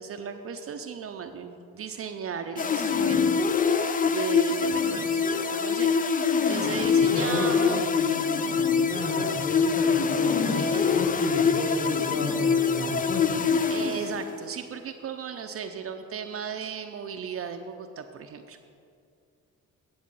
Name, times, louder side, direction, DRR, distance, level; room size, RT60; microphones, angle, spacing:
voice 1, 0.0-7.8 10.5-11.1 13.7-18.7, right 6 dB, 50° right, 6 dB, 0.6 m, -36 dB
sound 1, 2.6-14.4, left 6 dB, 30° left, 0.4 m, -24 dB
voice 2, 7.0-13.5, left 2 dB, 85° left, -1 dB, 1.4 m, -33 dB
9.6 x 7.1 x 5.5 m, 2.4 s
cardioid pair, 90°, 30 cm